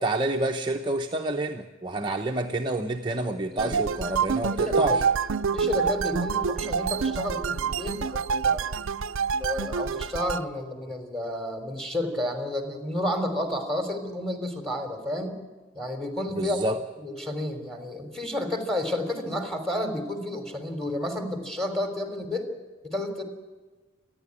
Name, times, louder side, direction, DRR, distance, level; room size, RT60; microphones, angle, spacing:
voice 1, 0.0-5.1 16.3-16.8, right 2 dB, 20° right, 3 dB, 0.9 m, -28 dB
sound 1, 3.6-10.4, right 6 dB, 65° right, 0.6 m, -27 dB
voice 2, 4.5-5.0 5.5-8.6 9.4-15.4 15.8-16.6 17.0-22.5 22.8-23.2, left 1 dB, ahead, 6 dB, 3.4 m, -31 dB
28.0 x 11.0 x 9.7 m, 1.3 s
head